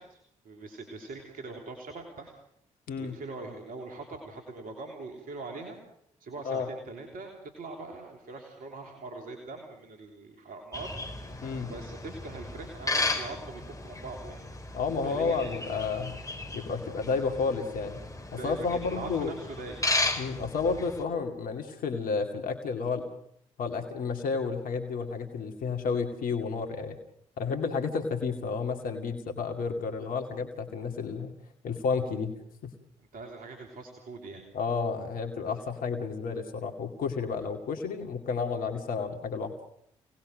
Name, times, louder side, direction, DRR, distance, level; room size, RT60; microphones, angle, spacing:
voice 1, 0.0-2.3 3.0-5.8 6.2-11.0 11.6-14.4 15.0-15.9 18.3-19.8 33.0-34.5, right 3 dB, 70° right, 3 dB, 3.3 m, -42 dB
voice 2, 2.9-3.2 6.4-6.7 11.4-11.7 14.7-16.2 16.5-18.0 18.3-19.3 20.2-23.0 23.6-27.0 27.4-31.3 31.6-32.3 32.6-32.7 34.5-39.5, left 5 dB, 70° left, 5 dB, 2.4 m, -31 dB
sound 1, 10.7-21.0, left 2 dB, 20° left, 4.2 m, -35 dB
27.0 x 19.0 x 6.5 m, 0.71 s
hypercardioid pair, 40°, 15 cm